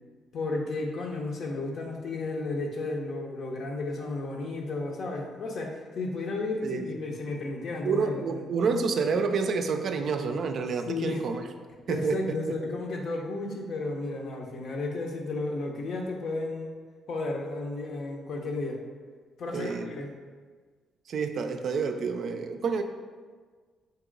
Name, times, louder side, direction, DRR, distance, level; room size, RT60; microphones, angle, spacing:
voice 1, 0.3-8.4 10.9-11.2 11.9-16.7 17.1-18.8 19.4-20.1, left 2 dB, 65° left, 1 dB, 0.7 m, -33 dB
voice 2, 7.8-11.4 11.9-12.6 19.5-19.9 21.1-22.8, right 5 dB, 60° right, 6 dB, 0.3 m, -28 dB
4.2 x 2.9 x 3.8 m, 1.5 s
cardioid pair, 90°, 0 cm